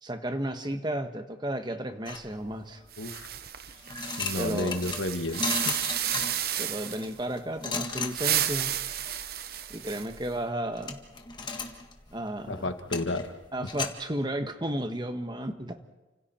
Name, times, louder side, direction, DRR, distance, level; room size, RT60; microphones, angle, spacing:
voice 1, 0.0-2.8 4.3-4.8 6.6-8.7 9.7-11.0 12.1-12.7 13.5-15.9, right 1 dB, 25° right, 7 dB, 1.4 m, -33 dB
sound 1, 2.1-2.8 3.5-13.9, left 4 dB, 25° left, 1.7 m, -36 dB
sound 2, 2.9-7.1 7.9-10.3, right 11 dB, 50° right, 1.0 m, -32 dB
voice 2, 3.0-3.3 4.2-5.8 12.5-13.4, left 2 dB, 85° left, 8 dB, 1.6 m, -32 dB
30.0 x 27.0 x 4.5 m, 1.1 s
head